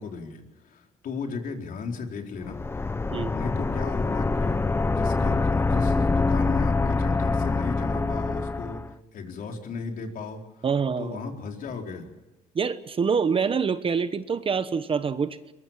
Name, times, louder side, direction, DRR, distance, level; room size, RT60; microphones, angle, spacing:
voice 1, 0.0-2.9 3.3-10.7 11.0-12.1, left 4 dB, 55° left, 3 dB, 4.2 m, -35 dB
sound 1, 2.4-8.9, left 3 dB, 15° left, 0.7 m, -25 dB
voice 2, 10.6-11.2 12.5-15.4, right 6 dB, 30° right, 12 dB, 1.1 m, -25 dB
22.5 x 22.0 x 7.5 m, 1.0 s
cardioid pair, 110°, 17 cm